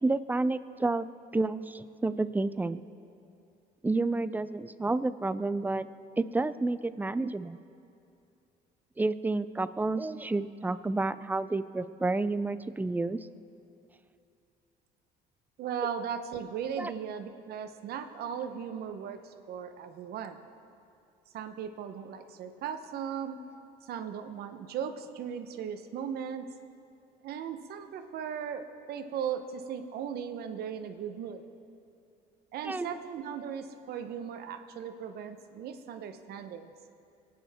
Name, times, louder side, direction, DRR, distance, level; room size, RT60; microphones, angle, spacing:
voice 1, 0.0-1.1 1.3-2.8 3.8-5.9 6.2-7.6 9.0-13.2 16.8-16.9 32.6-32.9, right 3 dB, 10° right, 14 dB, 0.4 m, -30 dB
voice 2, 15.6-20.4 21.3-23.4 23.8-26.5 27.2-31.4 32.5-36.7, right 8 dB, 70° right, 8 dB, 0.9 m, -37 dB
23.5 x 9.4 x 3.5 m, 2.6 s
cardioid pair, 110°, 17 cm